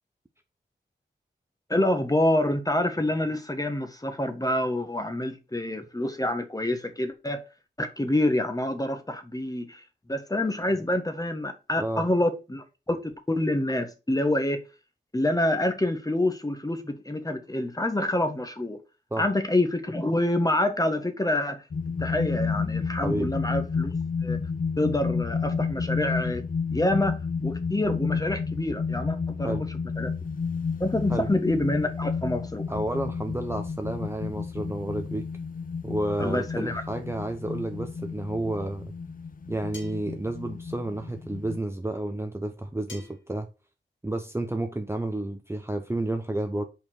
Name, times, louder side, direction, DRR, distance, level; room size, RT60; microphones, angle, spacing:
voice 1, 1.7-7.4 7.8-14.6 15.1-18.8 19.2-21.6 22.0-23.9 24.2-24.4 24.8-26.5 26.7-30.1 30.8-32.6 36.2-36.8, left 1 dB, 20° left, 1.4 m, -27 dB
sound 1, 21.7-41.6, left 5 dB, 45° left, 0.6 m, -31 dB
voice 2, 23.0-23.3 29.4-29.6 31.1-31.3 32.7-35.3 35.8-38.9 39.5-43.5 44.0-46.6, right 1 dB, 15° right, 0.8 m, -31 dB
sound 2, 39.7-40.1 42.9-43.3, left 3 dB, 80° left, 2.1 m, -44 dB
5.4 x 4.5 x 6.0 m
cardioid pair, 60°, 19 cm